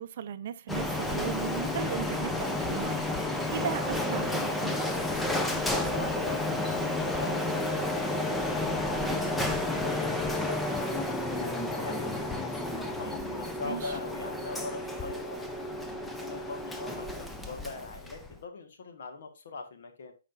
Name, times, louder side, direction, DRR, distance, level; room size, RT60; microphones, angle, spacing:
voice 1, 0.0-4.8 13.6-13.9, right 9 dB, 45° right, 0.5 m, -37 dB
Printer, 0.7-18.4, left 2 dB, 5° left, 0.6 m, -31 dB
voice 2, 5.6-15.7 16.2-20.1, left 4 dB, 60° left, 1.5 m, -42 dB
10.5 x 4.9 x 2.5 m
hypercardioid pair, 150°, 0 cm